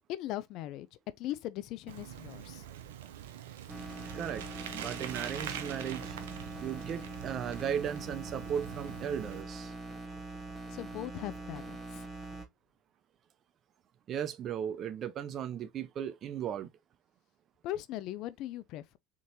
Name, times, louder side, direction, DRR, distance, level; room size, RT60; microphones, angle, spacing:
voice 1, 0.1-0.9 1.2-2.6 10.7-12.0 17.6-19.0, left 14 dB, 60° left, 0.4 m, -39 dB
Bicycle, 1.9-9.4, right 10 dB, 80° right, 0.7 m, -44 dB
sound 1, 3.7-12.5, right 2 dB, 10° right, 1.8 m, -43 dB
voice 2, 4.1-4.4 4.7-6.2 6.6-9.7 14.1-16.7, right 9 dB, 45° right, 0.6 m, -36 dB
3.8 x 3.7 x 3.0 m
hypercardioid pair, 80°, 0 cm